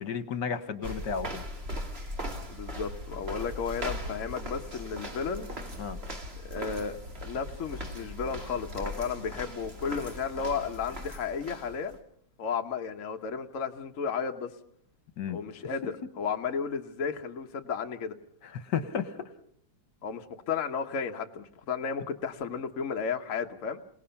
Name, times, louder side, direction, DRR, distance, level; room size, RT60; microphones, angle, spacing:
voice 1, 0.0-1.4 5.8-6.0 15.2-15.4 18.5-19.3, left 7 dB, 65° left, 11 dB, 1.8 m, -33 dB
sound 1, 0.8-12.0, equal, 30° right, 2.5 m, -39 dB
voice 2, 2.5-5.5 6.4-12.0 12.4-14.5 15.3-18.2 20.0-23.8, left 6 dB, 45° left, 4 dB, 1.3 m, -33 dB
28.0 x 19.0 x 5.8 m, 0.64 s
omnidirectional pair, 2.1 m